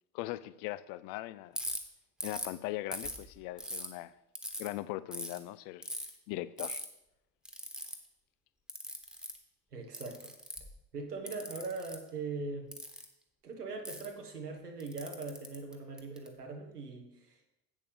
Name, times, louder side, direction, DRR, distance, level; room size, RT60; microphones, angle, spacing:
voice 1, 0.1-1.6 2.2-4.1 4.6-5.9 6.3-6.8, left 16 dB, 45° left, 17 dB, 0.5 m, -40 dB
Ratchet pawl, 1.5-1.8 2.2-2.5 2.9-3.9 4.3-4.7 5.1-5.4 5.8-6.1 6.6-6.8 7.4-8.0 8.7-9.4 9.9-10.7 11.3-12.0 12.7-13.0 13.8-14.1 14.8-16.3, equal, ahead, 1.4 m, -40 dB
voice 2, 9.7-10.3 10.9-12.7 13.4-17.3, right 3 dB, 85° right, 3 dB, 1.6 m, -41 dB
11.0 x 8.4 x 3.4 m, 0.88 s
figure-of-eight pair, 65°, 46 cm